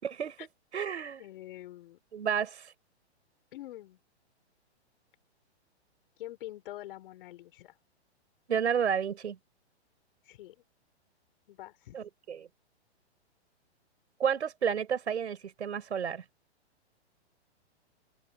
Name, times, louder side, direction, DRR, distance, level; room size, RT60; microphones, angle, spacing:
voice 1, 0.0-1.2 2.1-2.7 8.5-9.4 11.9-12.5 14.2-16.2, right 7 dB, 80° right, 6.3 m, -31 dB
voice 2, 1.2-2.0 3.5-4.0 6.2-7.8 10.3-10.6 11.5-12.0, left 15 dB, 50° left, 5.6 m, -45 dB
open air
hypercardioid pair, 135°, 34 cm